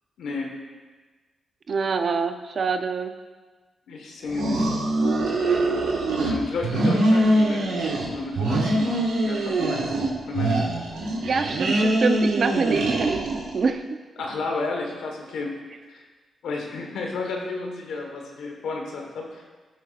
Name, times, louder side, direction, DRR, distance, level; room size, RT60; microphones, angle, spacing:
voice 1, 0.2-0.5 3.9-4.7 6.2-9.9 10.3-10.8 14.2-15.6 15.8-16.0 16.4-19.4, left 3 dB, 80° left, 1 dB, 1.3 m, -32 dB
voice 2, 1.7-3.1 11.2-13.8, right 4 dB, 60° right, 7 dB, 0.7 m, -25 dB
sound 1, 4.3-6.3 6.6-8.1 8.3-10.1 10.3-13.5, right 1 dB, 85° right, 1.6 m, -23 dB
15.0 x 5.4 x 2.5 m, 1.3 s
supercardioid pair, 50°, 0 cm